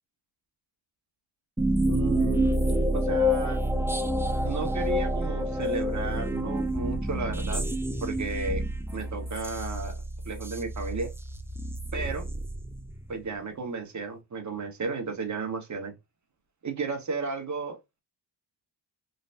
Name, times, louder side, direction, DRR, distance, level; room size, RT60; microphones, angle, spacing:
sound 1, 1.6-13.1, equal, 5° right, 0.4 m, -28 dB
voice 1, 1.8-2.7 2.9-3.6 4.4-7.6 8.0-8.6 8.9-11.1 11.9-12.3 13.1-15.9 16.6-17.8, right 4 dB, 40° right, 1.2 m, -33 dB
3.9 x 3.3 x 2.6 m
wide cardioid pair, 125°, 44 cm